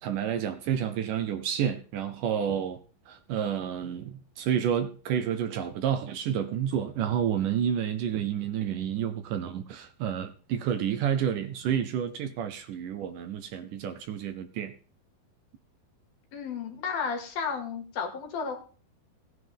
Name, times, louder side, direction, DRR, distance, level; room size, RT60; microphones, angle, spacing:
voice 1, 0.0-14.7, right 9 dB, 75° right, 2.1 m, -30 dB
voice 2, 16.3-18.6, left 6 dB, 75° left, 3.9 m, -33 dB
17.0 x 9.7 x 3.5 m
omnidirectional pair, 4.3 m